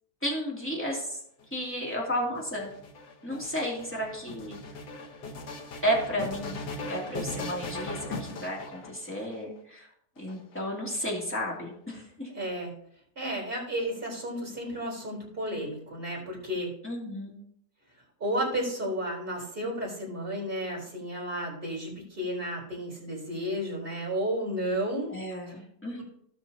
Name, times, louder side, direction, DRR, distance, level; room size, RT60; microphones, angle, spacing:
voice 1, 0.2-1.2 1.5-2.7 3.2-4.6 5.8-9.9 10.2-12.3 16.8-17.3 25.1-26.0, equal, 5° left, -4 dB, 2.7 m, -33 dB
sound 1, 1.4-9.4 10.2-11.0, left 2 dB, 75° left, 1.8 m, -39 dB
voice 2, 12.3-12.7 13.2-16.7 18.2-25.1 25.5-25.6, equal, 30° right, -4 dB, 4.1 m, -32 dB
17.5 x 6.4 x 2.9 m, 0.69 s
omnidirectional pair, 1.8 m